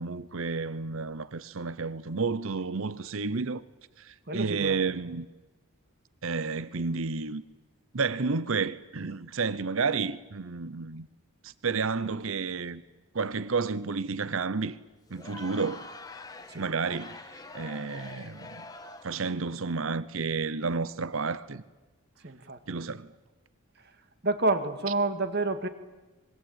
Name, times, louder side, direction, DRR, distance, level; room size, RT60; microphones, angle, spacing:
voice 1, 0.0-3.6 4.0-5.3 6.2-7.4 7.9-11.1 11.4-12.8 13.1-14.8 15.1-15.9 16.5-18.6 19.0-21.6 22.7-23.1, right 4 dB, 65° right, 0.8 m, -31 dB
voice 2, 4.3-4.9 16.5-16.7 22.2-22.6 24.2-25.7, right 2 dB, 45° right, 2.2 m, -29 dB
Crowd, 15.1-19.3, left 3 dB, 15° left, 1.4 m, -45 dB
25.5 x 23.0 x 8.9 m
head